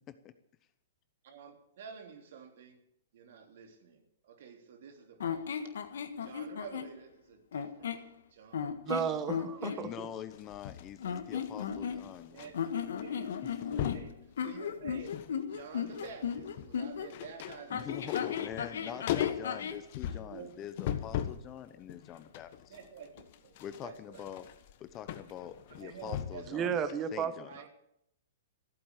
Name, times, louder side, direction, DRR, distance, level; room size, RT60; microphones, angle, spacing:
voice 1, 1.2-2.8 3.1-5.5 6.2-8.0 8.3-8.7 9.6-9.9 12.3-13.3 13.8-15.2 15.5-18.4 18.8-19.3 20.1-20.5 22.7-24.4 25.7-26.7 27.4-27.7, right 6 dB, 65° right, 4 dB, 3.2 m, -50 dB
sound 1, 5.2-6.9 7.5-8.1 8.5-9.8 11.0-12.2 12.5-17.1 17.7-19.8, left 7 dB, 75° left, 1.5 m, -36 dB
voice 2, 8.9-10.1 26.5-27.3, right 7 dB, 25° right, 10 dB, 1.4 m, -33 dB
voice 3, 9.8-12.5 13.4-13.5 17.7-22.8 23.6-24.5 24.8-26.8 27.1-27.5, left 10 dB, 30° left, 11 dB, 1.0 m, -44 dB
sound 2, 10.3-12.5 12.8-13.0 13.3-14.1 14.7-15.3 15.6-21.5 21.9-26.6 26.9-27.0, left 11 dB, 55° left, 1.3 m, -38 dB
15.0 x 8.7 x 8.4 m, 0.78 s
hypercardioid pair, 125°, 0 cm